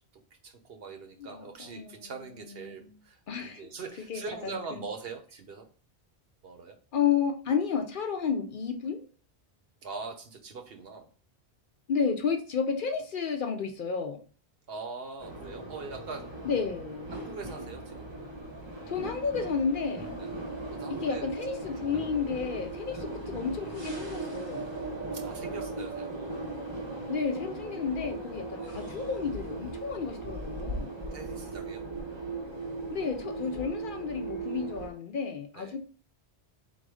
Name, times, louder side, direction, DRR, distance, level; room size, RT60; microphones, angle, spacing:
voice 1, 0.4-5.7 6.4-6.8 9.8-11.1 14.7-16.3 17.1-18.1 20.2-20.4 20.7-21.3 21.6-22.2 22.9-23.1 25.1-26.4 28.6-28.7 31.1-31.8 35.5-35.8, right 4 dB, 65° right, 0.9 m, -42 dB
voice 2, 1.2-2.1 2.7-2.9 3.3-3.7 4.1-4.5 6.9-9.0 11.9-14.2 16.4-17.1 18.9-20.1 20.9-24.7 27.1-30.9 32.9-35.8, left 6 dB, 60° left, 0.7 m, -31 dB
sound 1, 15.2-34.9, right 2 dB, 25° right, 0.8 m, -38 dB
3.9 x 2.6 x 4.7 m
omnidirectional pair, 1.1 m